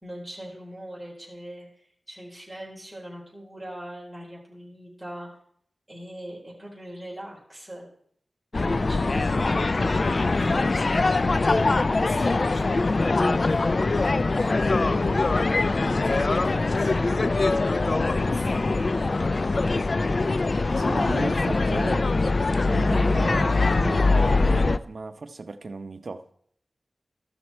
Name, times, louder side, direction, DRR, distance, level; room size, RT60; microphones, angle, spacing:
voice 1, 0.0-1.7 2.1-5.3 5.9-7.9 8.6-11.5 11.8-15.1 15.9-17.8 18.1-19.1 21.3-21.8, equal, ahead, 4.3 m, -41 dB
sound 1, 8.5-24.8, left 3 dB, 55° left, 0.4 m, -23 dB
voice 2, 20.8-22.0 22.7-26.3, right 3 dB, 70° right, 0.6 m, -34 dB
14.0 x 5.9 x 4.3 m
cardioid pair, 55°, 0 cm